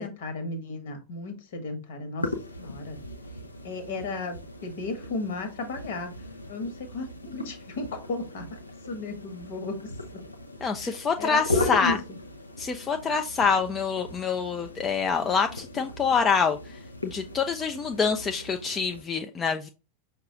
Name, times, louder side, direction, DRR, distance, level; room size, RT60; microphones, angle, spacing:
voice 1, 0.0-3.0 3.6-6.1 6.5-8.4 8.9-10.2 10.8-12.0, left 3 dB, 55° left, 1.2 m, -35 dB
sound 1, 2.2-19.0, left 2 dB, 85° left, 0.6 m, -37 dB
voice 2, 10.6-12.0 12.6-16.6 17.0-19.7, left 5 dB, 20° left, 0.4 m, -26 dB
5.5 x 2.3 x 3.8 m
figure-of-eight pair, 90°, 0 cm